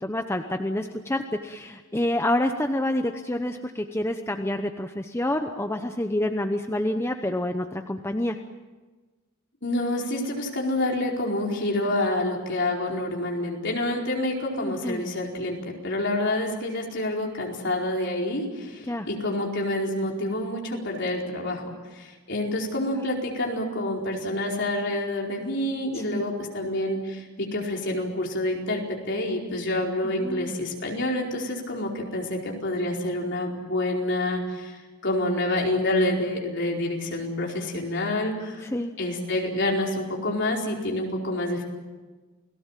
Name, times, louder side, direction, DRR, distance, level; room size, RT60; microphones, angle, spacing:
voice 1, 0.0-8.4 14.6-15.0 18.9-19.1 25.9-26.2 30.0-30.5 38.6-38.9, left 1 dB, 10° left, 6 dB, 0.8 m, -28 dB
voice 2, 9.6-21.6 22.0-34.7 35.0-38.6 39.0-41.6, left 1 dB, 55° left, -1 dB, 4.7 m, -28 dB
29.0 x 18.5 x 7.5 m, 1.3 s
head